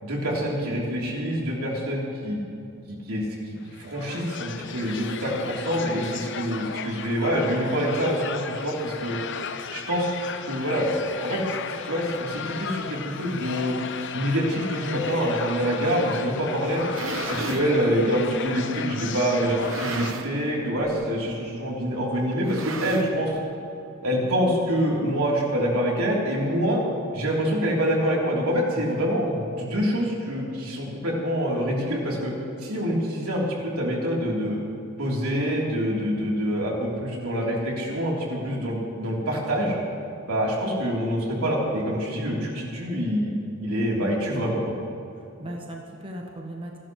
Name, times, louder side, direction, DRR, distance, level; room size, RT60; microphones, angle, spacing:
voice 1, 0.0-2.4 2.9-9.2 9.7-10.1 10.5-11.4 11.8-13.7 14.1-16.8 17.3-23.3 24.0-26.8 27.1-32.3 32.6-34.6 35.0-39.8 40.3-43.3 43.6-44.6, equal, 85° right, -3 dB, 3.5 m, -26 dB
sound 1, 3.6-20.1, left 6 dB, 55° left, 0.7 m, -35 dB
sound 2, 16.7-17.7 18.5-18.6 19.5-20.5 20.8-21.1 21.3-21.4 22.3-23.4, right 3 dB, 65° right, 1.1 m, -34 dB
voice 2, 45.2-46.8, equal, 25° right, 0 dB, 1.2 m, -37 dB
29.0 x 11.5 x 3.2 m, 2.6 s
head